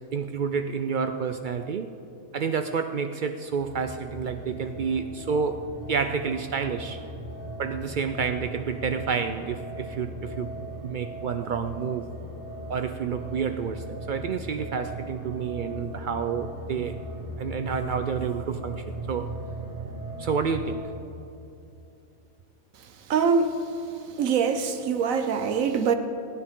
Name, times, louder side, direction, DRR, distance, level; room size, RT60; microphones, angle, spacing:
voice 1, 0.1-1.9 2.3-5.6 5.9-7.0 7.6-10.5 10.8-12.1 12.7-17.0 17.4-19.3 20.2-20.9, right 6 dB, 85° right, 8 dB, 0.4 m, -29 dB
sound 1, 3.3-20.8, right 1 dB, 40° right, 3.0 m, -38 dB
voice 2, 23.1-23.5 24.2-25.9, right 6 dB, 70° right, 8 dB, 1.3 m, -23 dB
29.0 x 9.9 x 3.7 m, 2.8 s
omnidirectional pair, 1.5 m